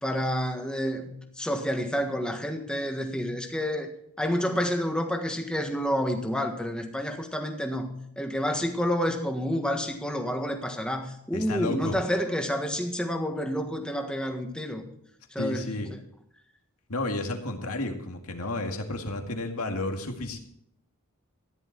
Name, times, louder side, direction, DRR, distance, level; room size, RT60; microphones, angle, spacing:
voice 1, 0.0-3.9 4.2-14.8 15.3-15.8, equal, 5° left, 4 dB, 1.5 m, -29 dB
voice 2, 11.3-12.0 15.4-15.9 16.9-20.4, left 2 dB, 80° left, 4 dB, 2.1 m, -32 dB
14.5 x 10.5 x 4.6 m, 0.72 s
head